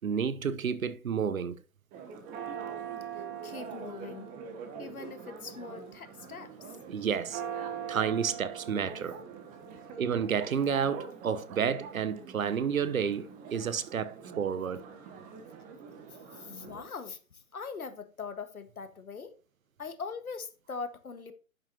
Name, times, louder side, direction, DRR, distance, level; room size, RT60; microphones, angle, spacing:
voice 1, 0.0-1.6 6.9-7.4 7.9-9.2 10.0-14.8, right 7 dB, 75° right, 1.0 m, -30 dB
Church bell, 1.9-16.9, right 7 dB, 20° right, 1.1 m, -43 dB
voice 2, 3.1-4.3 4.8-6.7 16.1-19.4 19.8-21.3, left 5 dB, 80° left, 1.7 m, -42 dB
10.5 x 7.8 x 2.9 m
figure-of-eight pair, 130°, 42 cm